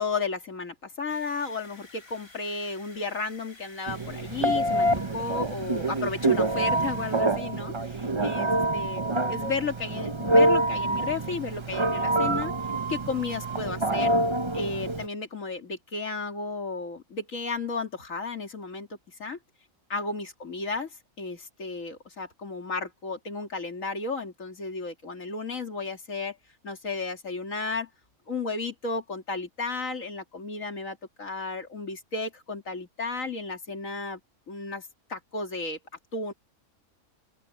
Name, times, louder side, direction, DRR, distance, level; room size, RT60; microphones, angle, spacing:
voice 1, 0.0-9.0 9.3-12.5 12.9-14.1 14.5-19.4 19.9-20.9 21.2-26.4 26.6-27.9 28.3-34.2 34.5-35.8 36.1-36.3, left 4 dB, 70° left, 3.0 m, -33 dB
sound 1, 1.1-7.2, left 2 dB, 45° left, 5.7 m, -52 dB
Telephone, 3.9-15.1, right 1 dB, 25° right, 0.8 m, -26 dB
open air
omnidirectional pair, 1.4 m